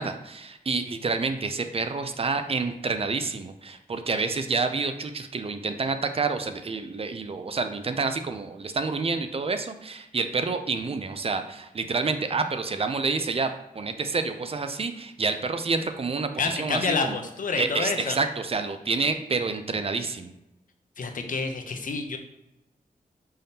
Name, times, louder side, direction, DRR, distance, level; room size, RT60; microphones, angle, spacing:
voice 1, 0.0-13.5 13.7-16.8 17.1-17.2 17.6-20.3, right 4 dB, 40° right, 8 dB, 0.4 m, -28 dB
voice 2, 16.4-18.2 21.0-22.2, left 4 dB, 65° left, 5 dB, 0.6 m, -28 dB
5.4 x 3.5 x 2.8 m, 0.90 s
wide cardioid pair, 75°, 15 cm